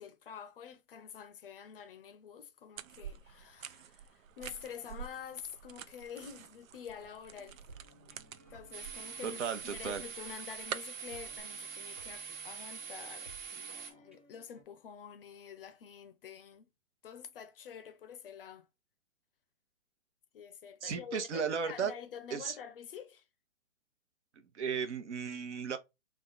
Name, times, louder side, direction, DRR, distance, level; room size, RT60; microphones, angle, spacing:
voice 1, 0.0-7.6 8.5-16.7 17.0-18.7 20.3-23.2, left 7 dB, 45° left, 0.6 m, -48 dB
sound 1, 2.8-11.4, right 8 dB, 75° right, 0.6 m, -48 dB
sound 2, 7.4-14.6, right 1 dB, 10° right, 0.3 m, -58 dB
sound 3, 8.7-13.9, right 6 dB, 35° right, 1.1 m, -44 dB
voice 2, 9.2-10.0 20.8-21.9 22.3-22.6 24.5-25.8, right 6 dB, 60° right, 1.0 m, -35 dB
3.7 x 2.3 x 3.8 m
hypercardioid pair, 135°, 40 cm